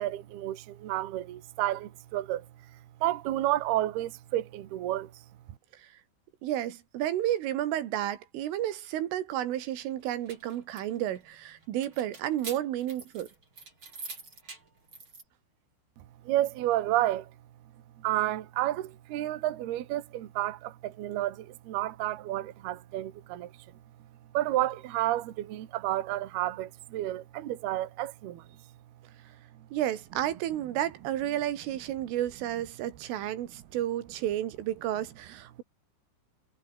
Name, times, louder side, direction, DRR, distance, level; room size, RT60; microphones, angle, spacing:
voice 1, 0.0-2.5 3.0-5.2 16.0-17.3 18.0-23.5 24.3-28.5, right 14 dB, 60° right, 3.4 m, -31 dB
voice 2, 6.4-13.3 29.7-35.6, right 12 dB, 85° right, 4.5 m, -32 dB
sound 1, 10.0-15.2, right 4 dB, 25° right, 5.5 m, -46 dB
omnidirectional pair, 5.6 m